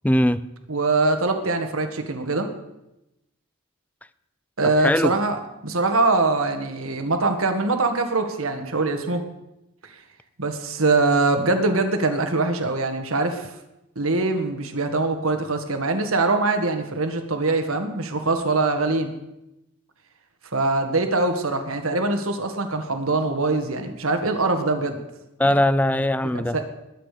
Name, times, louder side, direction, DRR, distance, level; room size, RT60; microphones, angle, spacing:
voice 1, 0.0-0.5 4.6-5.1 25.4-26.6, left 1 dB, 5° left, 0.4 m, -20 dB
voice 2, 0.7-2.5 4.6-9.2 10.4-13.5 14.0-19.1 20.5-25.0 25.4-25.6 26.3-26.6, right 3 dB, 70° right, 1.8 m, -23 dB
21.5 x 8.7 x 5.1 m
head